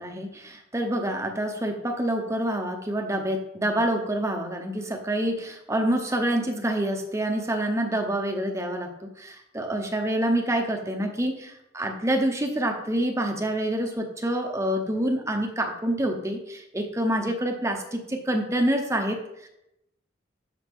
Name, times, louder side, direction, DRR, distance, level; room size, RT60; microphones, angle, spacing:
voice 1, 0.0-8.9 9.2-19.5, right 1 dB, 15° right, 3 dB, 0.9 m, -27 dB
12.5 x 5.8 x 3.6 m, 0.83 s
head